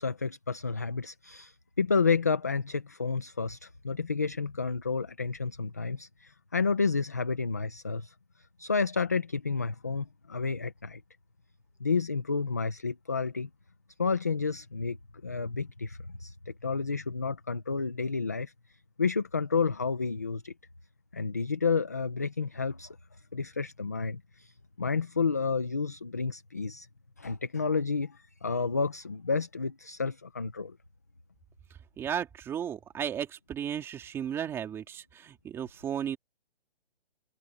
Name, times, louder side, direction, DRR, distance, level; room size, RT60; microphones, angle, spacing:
voice 1, 0.0-8.1 8.6-11.0 11.8-13.5 14.0-15.0 15.2-18.5 19.0-20.5 21.1-23.0 23.3-26.9 27.2-30.8, left 4 dB, 15° left, 0.5 m, -30 dB
voice 2, 32.0-36.2, right 9 dB, 10° right, 3.1 m, -34 dB
hypercardioid pair, 170°, 30 cm